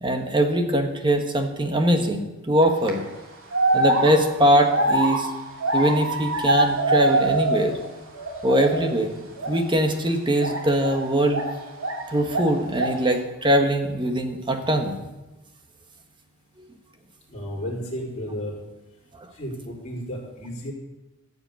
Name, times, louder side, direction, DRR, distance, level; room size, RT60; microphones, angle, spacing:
voice 1, 0.0-3.0 3.7-5.3 5.7-7.8 8.4-9.1 9.5-11.4 12.1-15.0 19.2-19.3, equal, 20° right, 5 dB, 1.4 m, -22 dB
sound 1, 2.6-2.9 3.5-7.9 8.1-8.9 9.3-9.6 10.4-12.0 12.3-13.1, right 2 dB, 65° right, 2.9 m, -24 dB
voice 2, 17.3-18.6 19.3-20.7, equal, 35° left, -6 dB, 4.6 m, -33 dB
15.0 x 7.0 x 8.3 m, 1.1 s
head